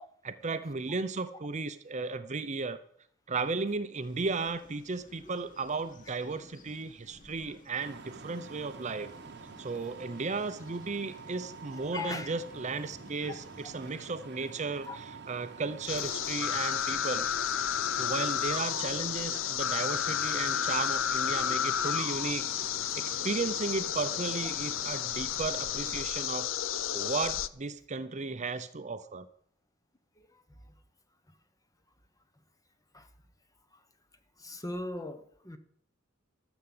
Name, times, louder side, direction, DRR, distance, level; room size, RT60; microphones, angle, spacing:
voice 1, 0.2-2.8 3.3-9.1 9.6-17.3 18.0-26.5 26.9-29.3, right 4 dB, 35° right, 11 dB, 0.7 m, -35 dB
sound 1, 4.0-14.0, left 1 dB, 40° left, 1.7 m, -56 dB
sound 2, 7.8-26.0, right 4 dB, 60° right, 1.0 m, -48 dB
voice 2, 11.7-12.3 14.9-15.0 21.8-22.2 32.9-33.1 34.4-35.6, left 3 dB, 20° left, 9 dB, 1.1 m, -39 dB
sound 3, 15.9-27.5, left 10 dB, 75° left, 0.5 m, -32 dB
13.0 x 7.1 x 7.9 m, 0.64 s
head